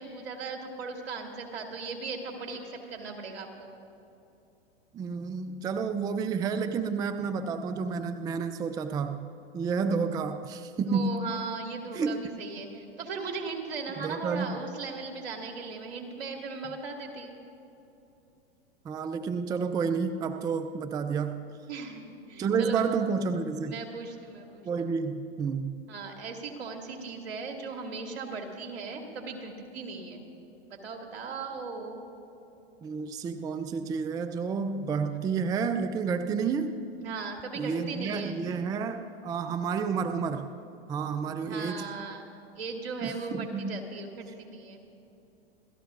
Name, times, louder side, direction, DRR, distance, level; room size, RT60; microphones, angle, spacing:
voice 1, 0.0-2.6 2.9-3.7 10.9-17.3 21.7-22.0 22.3-22.9 23.7-24.9 25.9-30.3 30.7-32.0 37.0-38.4 41.4-42.2 42.6-44.8, right 4 dB, 75° right, 2 dB, 2.2 m, -38 dB
voice 2, 4.9-11.3 11.9-12.2 14.0-14.6 18.8-21.5 22.4-23.8 24.6-25.8 32.8-36.8 37.5-40.5 40.9-41.9 43.0-43.8, right 5 dB, 10° right, 9 dB, 0.4 m, -30 dB
28.0 x 13.5 x 2.5 m, 2.8 s
hypercardioid pair, 115°, 31 cm